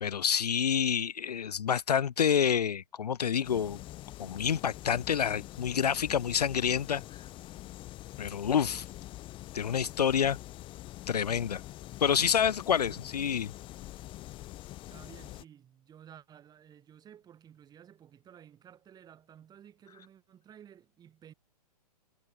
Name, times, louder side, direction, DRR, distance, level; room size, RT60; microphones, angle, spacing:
voice 1, 0.0-3.8 4.2-7.0 8.2-8.8 9.5-10.4 11.1-11.6 12.0-13.5, left 8 dB, 75° left, 0.5 m, -28 dB
sound 1, 3.4-15.4, left 16 dB, 25° left, 1.3 m, -45 dB
voice 2, 14.9-21.3, right 9 dB, 20° right, 4.5 m, -54 dB
figure-of-eight pair, 115°, 20 cm